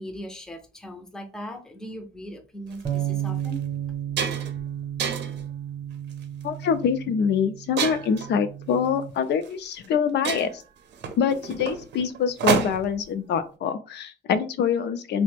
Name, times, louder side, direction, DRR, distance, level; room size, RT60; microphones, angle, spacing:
voice 1, 0.0-3.7, equal, 5° left, 0.4 m, -39 dB
sound 1, 2.7-2.9 3.4-3.6 3.9-4.6 5.0-5.4 6.1-6.4 7.8-8.3 9.4-9.5 9.8-9.9 10.2-13.0, right 6 dB, 90° right, 0.6 m, -28 dB
sound 2, 2.8-9.1, right 10 dB, 35° right, 0.6 m, -33 dB
voice 2, 6.4-10.5 11.2-15.2, left 7 dB, 75° left, 0.4 m, -25 dB
3.2 x 2.0 x 3.3 m
wide cardioid pair, 180°, 17 cm